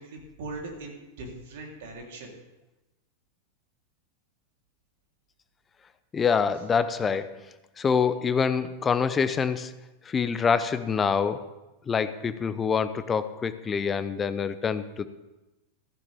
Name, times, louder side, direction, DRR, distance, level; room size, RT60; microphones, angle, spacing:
voice 1, 0.0-2.3, right 2 dB, 55° right, 0 dB, 3.7 m, -40 dB
voice 2, 6.1-7.5 7.8-9.7 10.0-11.4 11.9-15.1, left 6 dB, 20° left, 13 dB, 0.8 m, -26 dB
15.0 x 15.0 x 3.6 m, 1.0 s
figure-of-eight pair, 90°, 0 cm